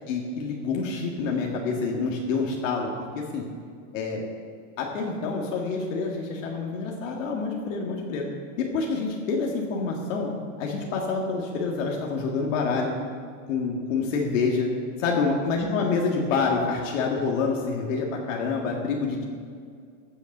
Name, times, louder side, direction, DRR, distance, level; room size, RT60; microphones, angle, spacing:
voice 1, 0.1-2.9 3.2-3.4 3.9-4.2 4.8-8.2 8.6-10.3 10.6-12.9 13.5-14.7 15.0-19.2, left 4 dB, 80° left, -1 dB, 1.9 m, -27 dB
15.0 x 7.0 x 6.7 m, 2.2 s
supercardioid pair, 165°, 38 cm